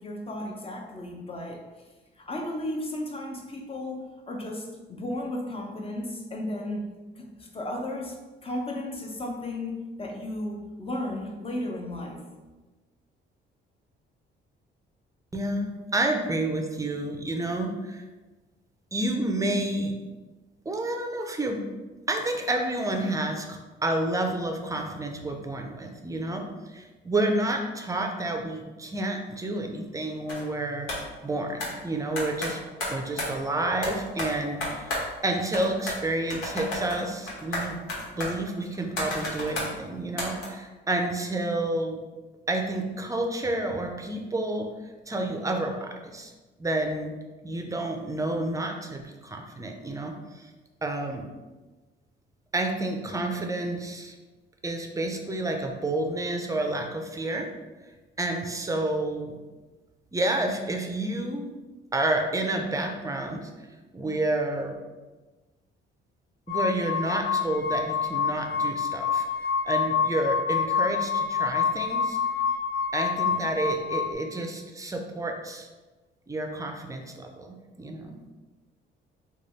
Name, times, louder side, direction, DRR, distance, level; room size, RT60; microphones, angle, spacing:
voice 1, 0.0-1.6 2.2-6.9 7.2-8.2 8.4-12.2, left 1 dB, 30° left, 1 dB, 0.7 m, -34 dB
voice 2, 15.3-18.0 18.9-20.0 20.7-21.6 22.1-30.9 31.2-32.6 32.9-35.0 35.2-37.8 38.1-42.0 42.5-44.7 45.1-46.3 46.6-47.1 47.4-50.5 50.8-51.2 52.5-54.1 54.6-57.5 58.2-59.4 60.1-61.5 61.9-63.5 63.9-64.8 66.5-72.2 72.9-75.7 76.3-78.2, right 2 dB, 15° right, 3 dB, 0.5 m, -29 dB
sound 1, 30.3-30.4 30.9-31.1 31.6-31.7 32.2-33.3 33.8-35.3 35.5-36.0 36.3-39.7 40.2-40.4, left 1 dB, 90° left, 1.2 m, -32 dB
sound 2, 66.5-74.1, left 6 dB, 55° left, 0.4 m, -27 dB
3.2 x 2.3 x 4.0 m, 1.2 s
cardioid pair, 90°, 20 cm